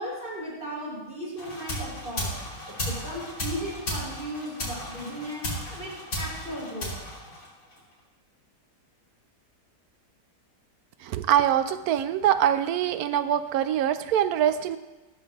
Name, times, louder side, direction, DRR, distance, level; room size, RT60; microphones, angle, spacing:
voice 1, 0.0-2.3 2.7-6.9, equal, 30° right, -5 dB, 3.8 m, -36 dB
sound 1, 1.4-7.9, equal, 60° left, 3.4 m, -35 dB
voice 2, 11.0-14.8, right 10 dB, 70° right, 11 dB, 1.0 m, -24 dB
15.0 x 7.0 x 3.6 m, 1.1 s
omnidirectional pair, 1.7 m